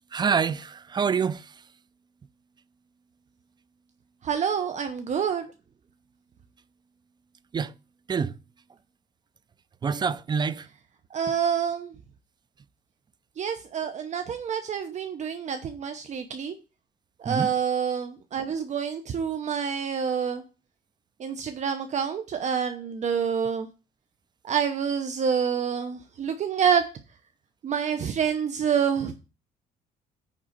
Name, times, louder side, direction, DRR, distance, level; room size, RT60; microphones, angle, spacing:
voice 1, 0.1-1.5 7.5-7.7 8.1-8.4 9.8-10.7 17.3-17.5, right 6 dB, 25° right, 0.4 m, -26 dB
voice 2, 4.2-5.5 11.1-11.9 13.4-16.5 17.2-20.4 21.2-23.7 24.4-26.8 27.6-29.1, right 7 dB, 45° right, 0.8 m, -27 dB
9.0 x 3.8 x 6.5 m
cardioid pair, 110°, 17 cm